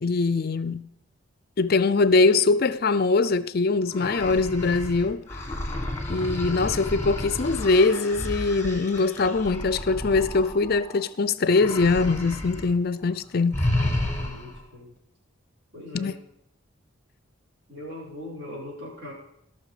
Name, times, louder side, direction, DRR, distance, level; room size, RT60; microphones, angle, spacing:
voice 1, 0.0-0.9 1.6-5.2 6.1-13.7 15.9-16.2, left 3 dB, 45° left, 0.4 m, -22 dB
sound 1, 3.9-11.1 11.5-12.7 13.0-13.2 13.5-14.6, left 1 dB, 10° left, 1.6 m, -31 dB
voice 2, 14.2-14.9 15.7-16.2 17.7-19.1, left 1 dB, 50° right, 4.9 m, -40 dB
18.0 x 6.1 x 4.9 m
head